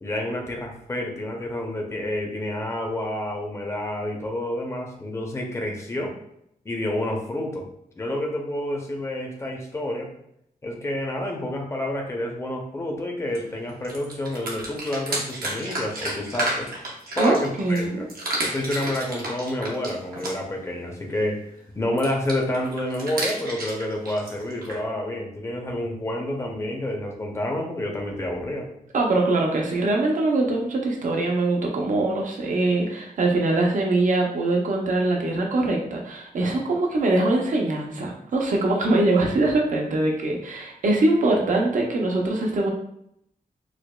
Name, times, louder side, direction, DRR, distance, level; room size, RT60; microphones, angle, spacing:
voice 1, 0.0-6.1 6.6-7.6 8.0-10.1 10.6-16.7 17.1-18.1 18.5-21.4 21.7-28.7, left 1 dB, 20° left, 0 dB, 0.5 m, -29 dB
sound 1, 13.3-13.4 13.7-17.8 18.1-20.6 22.0-24.8, right 1 dB, 80° right, 0.9 m, -31 dB
voice 2, 17.2-18.1 28.9-42.7, right 2 dB, 60° right, 0 dB, 0.6 m, -23 dB
4.8 x 2.2 x 2.2 m, 0.74 s
wide cardioid pair, 160°, 15 cm